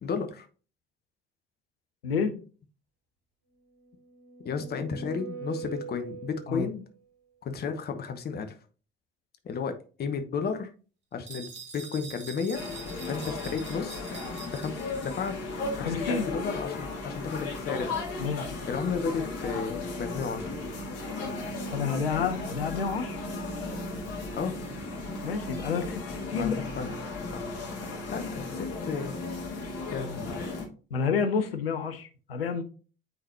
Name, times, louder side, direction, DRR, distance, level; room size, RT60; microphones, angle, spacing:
voice 1, 0.0-0.5 4.4-6.8 7.4-8.6 9.4-10.7 11.1-12.6 13.1-14.0 14.4-14.7 15.0-15.4 15.7-17.9 18.7-20.5 24.4-24.5 26.3-26.9 28.1-29.1 29.9-30.4, left 5 dB, 35° left, 0.9 m, -33 dB
voice 2, 2.0-2.4 6.5-6.7 15.8-16.3 18.2-18.5 21.7-23.2 25.2-26.7 30.9-32.6, left 6 dB, 80° left, 0.7 m, -29 dB
sound 1, 3.8-6.9, right 6 dB, 65° right, 2.4 m, -42 dB
sound 2, 11.3-15.4, right 5 dB, 40° right, 1.9 m, -45 dB
sound 3, 12.5-30.6, left 3 dB, 55° left, 2.0 m, -35 dB
9.2 x 3.9 x 2.8 m
figure-of-eight pair, 50°, 29 cm